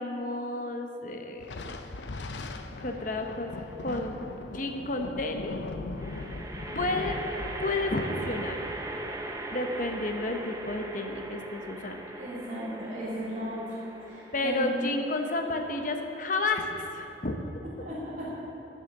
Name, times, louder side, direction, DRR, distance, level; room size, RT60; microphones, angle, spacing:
voice 1, 0.0-1.5 2.8-3.5 3.8-4.3 4.5-5.7 6.7-7.2 7.6-8.6 9.5-12.0 14.3-17.4, left 2 dB, 50° left, 4 dB, 1.0 m, -31 dB
Thunder, 1.4-10.2, left 2 dB, 85° left, 0.7 m, -40 dB
sound 1, 2.9-3.4 6.0-17.3, right 2 dB, 20° right, 0.7 m, -40 dB
voice 2, 12.1-13.8 14.1-14.7 17.8-18.4, equal, 45° right, -8 dB, 2.8 m, -36 dB
13.5 x 6.4 x 6.7 m, 2.9 s
head